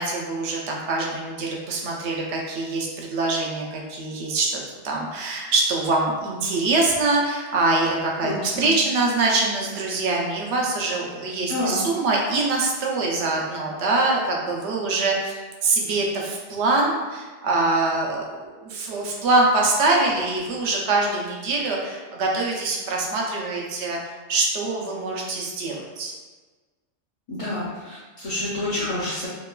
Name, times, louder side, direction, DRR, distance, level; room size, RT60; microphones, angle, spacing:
voice 1, 0.0-24.0 24.3-26.1, right 2 dB, 75° right, -1 dB, 0.8 m, -24 dB
voice 2, 8.2-8.7 11.5-11.8 27.3-29.3, left 2 dB, 50° left, -9 dB, 0.4 m, -28 dB
3.0 x 2.2 x 2.2 m, 1.3 s
omnidirectional pair, 1.2 m